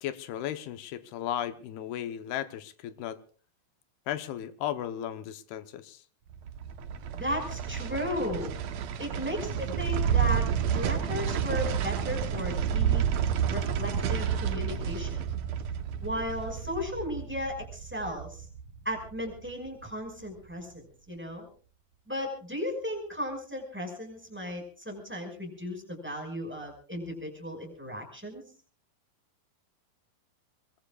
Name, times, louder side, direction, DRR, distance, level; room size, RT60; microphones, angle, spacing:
voice 1, 0.0-3.2 4.1-6.0, left 11 dB, 75° left, 11 dB, 2.8 m, -35 dB
sound 1, 6.3-19.5 19.8-19.9, right 8 dB, 80° right, 1.5 m, -30 dB
voice 2, 7.1-8.5 9.0-10.5 10.7-13.0 13.5-15.2 16.0-18.5 18.9-21.5 22.1-28.4, left 1 dB, 5° right, 3 dB, 5.1 m, -35 dB
25.5 x 21.5 x 2.4 m, 0.40 s
omnidirectional pair, 4.8 m